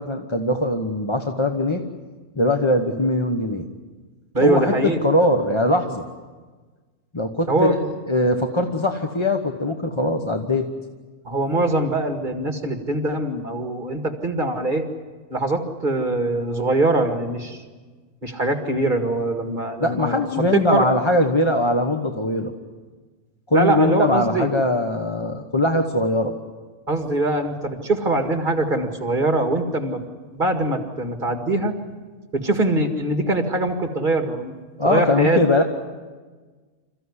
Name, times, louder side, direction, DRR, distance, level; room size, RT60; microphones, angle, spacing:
voice 1, 0.0-1.8 2.4-3.6 4.4-4.7 5.0-6.0 7.1-7.8 8.1-10.6 19.8-22.5 23.5-26.3 34.8-35.6, left 1 dB, 20° left, 5 dB, 1.0 m, -21 dB
voice 2, 4.3-5.0 7.5-7.8 11.2-14.9 15.3-17.6 18.2-20.9 23.5-24.5 26.9-30.0 30.3-31.7 32.3-34.5 34.8-35.4, right 2 dB, 30° right, 5 dB, 2.1 m, -22 dB
27.5 x 15.0 x 9.8 m, 1.4 s
omnidirectional pair, 1.6 m